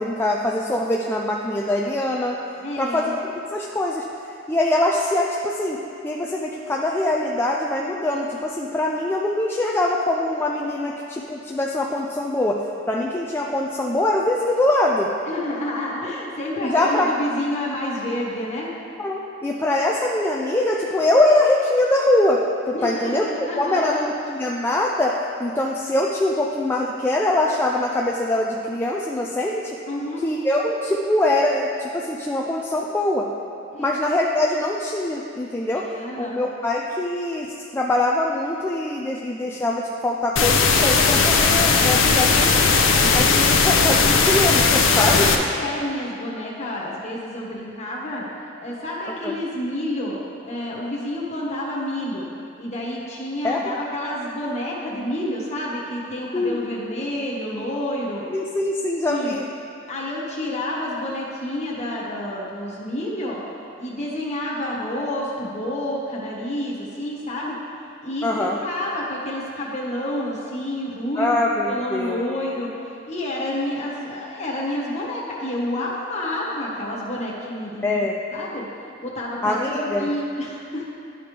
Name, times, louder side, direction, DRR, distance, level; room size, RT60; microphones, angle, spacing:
voice 1, 0.0-2.4 2.8-4.1 4.5-5.8 6.0-12.6 12.9-15.1 16.6-17.1 19.0-22.4 22.7-23.2 23.6-29.7 30.2-33.3 33.8-35.8 36.2-37.5 37.7-42.6 43.1-45.3 49.2-49.3 53.4-53.6 56.3-56.6 58.3-59.4 68.2-68.6 71.2-72.2 77.8-78.2 79.4-80.1, left 1 dB, 10° left, -2 dB, 0.3 m, -23 dB
voice 2, 2.6-3.1 15.3-18.7 22.7-24.0 29.9-30.2 33.7-34.0 35.7-36.4 43.0-43.2 44.7-48.3 48.6-52.3 52.6-58.3 59.1-59.3 59.9-63.4 63.8-67.6 68.0-71.4 71.7-78.0 78.3-78.7 79.0-80.9, left 1 dB, 35° left, -4 dB, 1.3 m, -29 dB
sound 1, 40.4-45.4, left 4 dB, 80° left, 0.6 m, -17 dB
11.5 x 5.0 x 3.3 m, 2.6 s
head